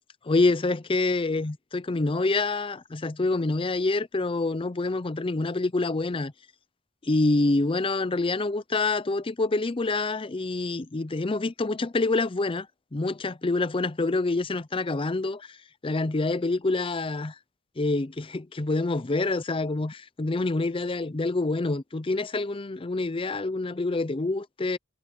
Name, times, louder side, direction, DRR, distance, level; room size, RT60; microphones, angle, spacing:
voice 1, 0.2-6.3 7.0-12.7 12.9-15.6 15.8-17.3 17.8-24.8, left 2 dB, 25° left, 0.5 m, -26 dB
head